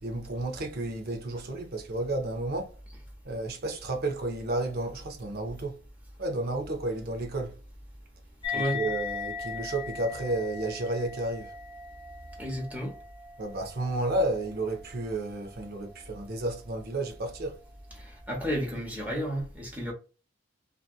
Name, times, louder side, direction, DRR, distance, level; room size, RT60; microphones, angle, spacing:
voice 1, 0.0-2.7 3.2-5.8 6.2-7.6 8.5-11.5 13.4-17.6, right 2 dB, 55° right, 0.7 m, -32 dB
sound 1, 8.4-15.3, left 5 dB, 25° left, 0.8 m, -38 dB
voice 2, 12.4-12.9 18.0-19.9, equal, 10° right, 1.0 m, -32 dB
2.7 x 2.5 x 2.3 m
head